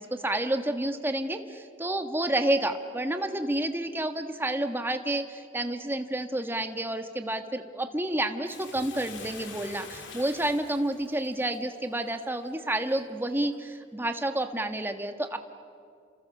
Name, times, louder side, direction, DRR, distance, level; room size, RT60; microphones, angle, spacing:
voice 1, 0.0-15.4, right 1 dB, 10° right, 7 dB, 1.4 m, -30 dB
Bathtub (filling or washing), 8.4-13.0 13.5-13.6, left 4 dB, 70° left, 3.6 m, -46 dB
29.0 x 28.0 x 7.2 m, 2.3 s
head